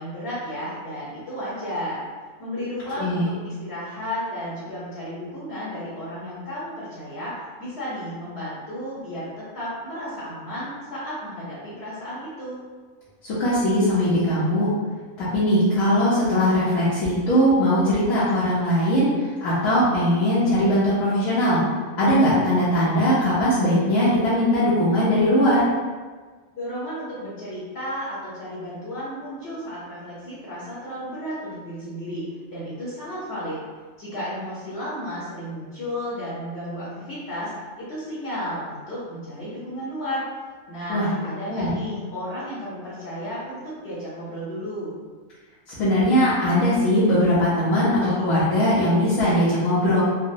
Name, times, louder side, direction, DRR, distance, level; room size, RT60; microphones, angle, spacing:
voice 1, 0.0-2.1 2.4-12.6 26.5-33.6 34.0-37.5 37.8-40.3 40.7-44.9, equal, 55° left, -9 dB, 1.0 m, -33 dB
voice 2, 3.0-3.3 13.2-14.7 15.2-19.1 19.4-21.6 22.0-25.7 40.9-41.1 41.5-41.7 45.8-50.0, equal, 75° left, -11 dB, 1.2 m, -20 dB
3.8 x 2.0 x 2.5 m, 1.4 s
omnidirectional pair, 1.5 m